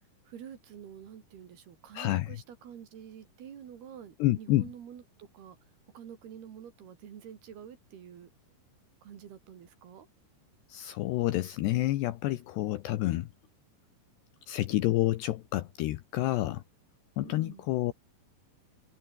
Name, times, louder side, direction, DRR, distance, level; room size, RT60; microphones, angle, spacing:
voice 1, 0.3-5.6 5.9-8.3 9.0-10.1 17.2-17.7, right 8 dB, 55° right, 4.2 m, -48 dB
voice 2, 1.9-2.3 4.2-4.7 10.7-13.3 14.5-16.6 17.2-17.9, left 16 dB, 80° left, 2.6 m, -29 dB
omnidirectional pair, 5.8 m